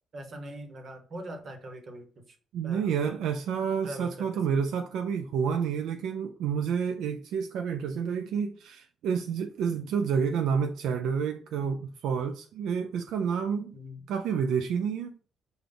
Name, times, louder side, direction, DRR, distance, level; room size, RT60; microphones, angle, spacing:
voice 1, 0.1-2.2 2.6-3.2 3.8-4.6 13.7-14.0, right 1 dB, 50° right, 1.0 m, -42 dB
voice 2, 2.5-13.7 14.1-15.2, right 6 dB, 85° right, 0.3 m, -29 dB
5.1 x 2.3 x 3.8 m
cardioid pair, 90°, 0 cm